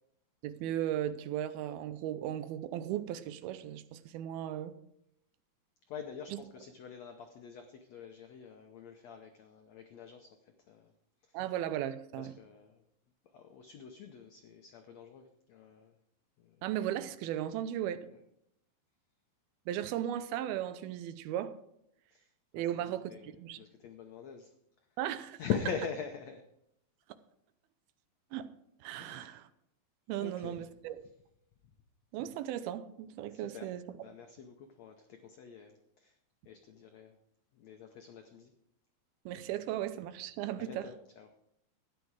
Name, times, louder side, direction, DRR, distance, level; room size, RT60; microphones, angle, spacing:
voice 1, 0.4-4.8 6.3-6.4 11.3-12.3 16.6-18.1 19.7-21.6 22.5-23.6 25.0-25.4 28.3-28.5 28.8-29.5 30.1-31.0 32.1-33.8 39.3-40.9, right 11 dB, 85° right, 2.6 m, -36 dB
voice 2, 5.9-10.9 11.2-11.4 12.2-12.8 13.3-15.9 16.4-16.6 18.1-18.2 22.1-22.8 23.1-24.5 25.4-26.4 29.0-29.3 30.2-30.6 33.3-33.7 34.0-36.2 36.4-37.2 37.5-38.5 40.6-41.3, left 7 dB, 85° left, 1.5 m, -44 dB
13.5 x 9.9 x 4.8 m
omnidirectional pair, 4.3 m